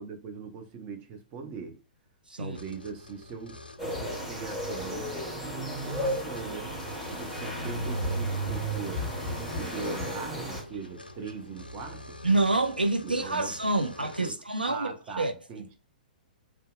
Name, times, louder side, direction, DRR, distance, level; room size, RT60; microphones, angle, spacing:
voice 1, 0.0-1.8 2.4-6.8 7.1-9.1 9.6-12.2 13.0-13.6 13.8-15.7, right 5 dB, 30° right, 0.5 m, -41 dB
sound 1, 2.5-14.3, left 2 dB, 90° left, 0.3 m, -46 dB
sound 2, 3.8-10.6, right 1 dB, 5° right, 1.0 m, -33 dB
voice 2, 12.2-15.3, right 2 dB, 85° right, 0.4 m, -27 dB
2.6 x 2.2 x 2.3 m
figure-of-eight pair, 110°, 5 cm